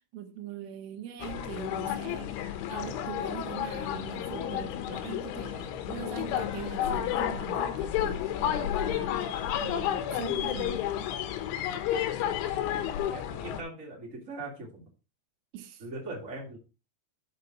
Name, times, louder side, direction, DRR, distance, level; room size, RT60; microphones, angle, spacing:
voice 1, 0.0-2.4 2.7-10.8 15.5-15.8, right 10 dB, 80° right, 3.6 m, -42 dB
sound 1, 1.2-13.6, left 10 dB, 80° left, 3.3 m, -31 dB
voice 2, 13.1-14.8 15.8-16.6, right 2 dB, 20° right, 2.3 m, -40 dB
6.6 x 6.4 x 5.8 m
omnidirectional pair, 5.6 m